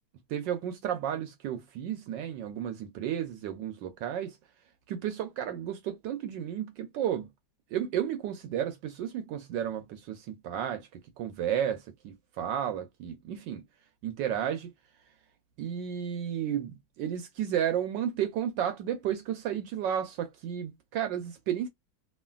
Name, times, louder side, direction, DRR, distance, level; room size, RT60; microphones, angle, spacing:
voice 1, 0.3-4.4 4.9-7.3 7.7-10.9 11.2-13.6 14.0-14.7 15.6-21.7, right 9 dB, 75° right, 1.1 m, -32 dB
3.1 x 2.4 x 2.2 m
omnidirectional pair, 2.2 m